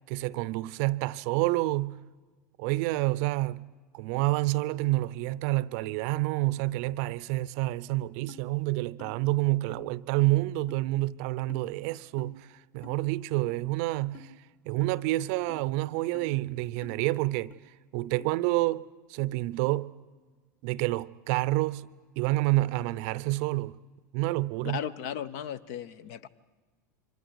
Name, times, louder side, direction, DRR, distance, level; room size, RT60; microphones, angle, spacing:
voice 1, 0.1-2.0 2.6-12.5 12.7-14.3 14.7-17.5 17.9-18.8 19.1-19.9 20.6-21.9 22.2-23.8 24.1-24.8, right 19 dB, 55° right, 0.6 m, -28 dB
sound 1, 8.3-8.4 9.0-9.1 9.7-9.9 10.7-10.8 11.5-11.6 12.2-12.3 12.8-13.0 13.5-13.6 14.1-14.3 14.8-14.9 15.5-15.6 16.1-16.3 16.8-17.0 17.5-17.6 18.1-18.3, left 7 dB, 20° left, 1.5 m, -48 dB
voice 2, 24.6-26.3, left 9 dB, 55° left, 0.9 m, -36 dB
28.5 x 25.0 x 4.8 m
hypercardioid pair, 90°, 10 cm